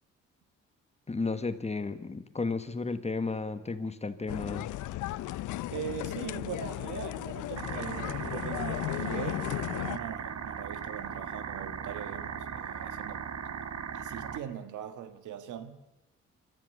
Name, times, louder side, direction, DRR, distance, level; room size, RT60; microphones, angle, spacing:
voice 1, 1.1-4.7, left 3 dB, 20° left, 1.3 m, -33 dB
sound 1, 4.3-10.0, left 15 dB, 75° left, 0.6 m, -35 dB
voice 2, 5.7-13.2 13.9-15.8, right 9 dB, 80° right, 1.6 m, -41 dB
sound 2, 7.6-14.4, right 7 dB, 55° right, 1.2 m, -38 dB
24.0 x 13.5 x 8.1 m
cardioid pair, 90°, 30 cm